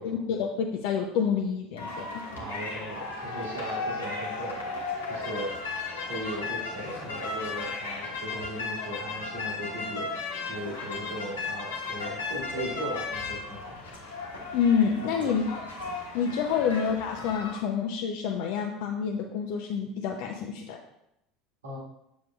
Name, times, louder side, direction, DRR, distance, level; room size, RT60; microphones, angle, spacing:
voice 1, 0.0-2.1 14.5-15.6 16.1-20.8, left 7 dB, 55° left, 1 dB, 0.6 m, -28 dB
sound 1, 1.8-17.6, left 3 dB, 75° left, 1.2 m, -35 dB
voice 2, 2.3-5.5 6.1-10.1 10.5-13.8 15.2-15.3 16.6-16.7 21.6-21.8, right 1 dB, 70° right, -3 dB, 1.6 m, -38 dB
7.3 x 6.3 x 2.3 m, 0.81 s
figure-of-eight pair, 70°, 0 cm